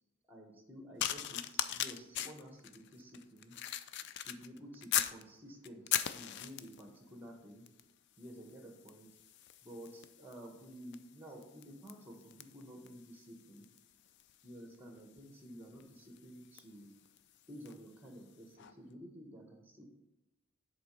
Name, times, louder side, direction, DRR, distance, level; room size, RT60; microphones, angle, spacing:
voice 1, 0.3-3.6 4.1-7.6 8.2-9.1 9.6-13.7 14.4-16.9 17.5-19.9, equal, 10° right, 3 dB, 1.1 m, -52 dB
sound 1, 1.0-5.2 5.6-6.9 7.7-7.9 8.2-17.9 18.6-18.7, left 11 dB, 55° left, 0.4 m, -41 dB
7.7 x 3.7 x 5.3 m, 0.94 s
head